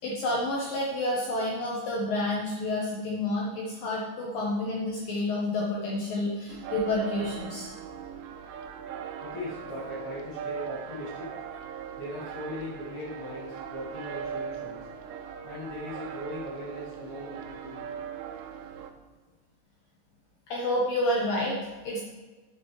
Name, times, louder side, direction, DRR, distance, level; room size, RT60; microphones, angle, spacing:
voice 1, 0.0-7.7 20.5-22.0, left 1 dB, 80° left, -3 dB, 2.0 m, -29 dB
sound 1, 6.5-18.9, right 7 dB, 80° right, 3.3 m, -39 dB
voice 2, 8.7-11.5 12.0-14.9 15.4-17.8, left 1 dB, 50° left, -6 dB, 4.1 m, -39 dB
12.0 x 8.1 x 3.2 m, 1.3 s
omnidirectional pair, 5.8 m